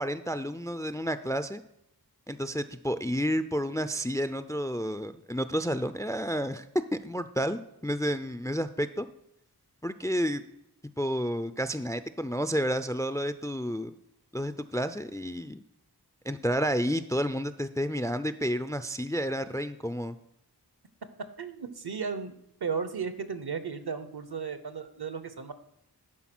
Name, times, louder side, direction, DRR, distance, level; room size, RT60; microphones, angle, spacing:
voice 1, 0.0-1.6 2.3-6.6 6.9-9.1 9.8-10.4 11.0-13.9 14.3-15.6 16.3-20.2, equal, 10° left, 12 dB, 0.3 m, -30 dB
voice 2, 21.4-22.3 22.6-25.5, right 6 dB, 70° right, 11 dB, 0.9 m, -35 dB
11.0 x 4.3 x 6.0 m, 0.81 s
wide cardioid pair, 60°, 40 cm